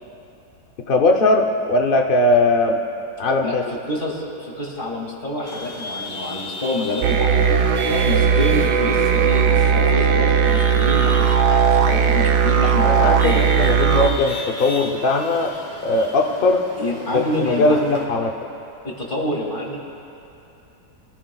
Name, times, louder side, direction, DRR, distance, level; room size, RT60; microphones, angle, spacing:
voice 1, 0.9-2.8 3.2-3.6 12.8-15.5 15.8-16.6 17.1-18.3, left 2 dB, 65° left, 2 dB, 0.5 m, -19 dB
voice 2, 3.9-7.6 7.9-13.4 16.8-18.0 18.8-19.8, left 1 dB, 30° left, -2 dB, 2.3 m, -27 dB
Chatter / Vehicle horn car horn honking / Traffic noise roadway noise, 5.4-18.0, left 1 dB, 15° right, 2.8 m, -35 dB
sound 1, 7.0-14.1, right 7 dB, 70° right, 1.1 m, -17 dB
24.5 x 14.5 x 2.3 m, 2.8 s
omnidirectional pair, 1.9 m